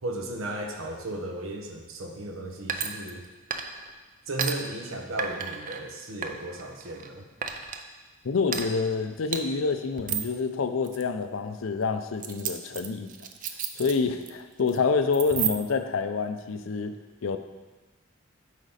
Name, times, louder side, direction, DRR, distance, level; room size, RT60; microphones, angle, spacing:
voice 1, 0.0-3.2 4.3-7.3, right 1 dB, 85° right, 3 dB, 1.0 m, -35 dB
sound 1, 2.7-3.2 3.5-3.9 4.4-4.5 5.2-5.8 6.2-7.1 7.4-7.8 8.5-8.7 9.3-9.4 10.0-10.3 10.8-11.0 12.2-14.3 14.6-14.8 15.1-15.8, right 8 dB, 40° right, 0.5 m, -32 dB
voice 2, 8.2-13.1 13.8-16.9 17.2-17.4, left 4 dB, 80° left, 9 dB, 0.5 m, -27 dB
8.2 x 5.1 x 4.1 m, 1.3 s
head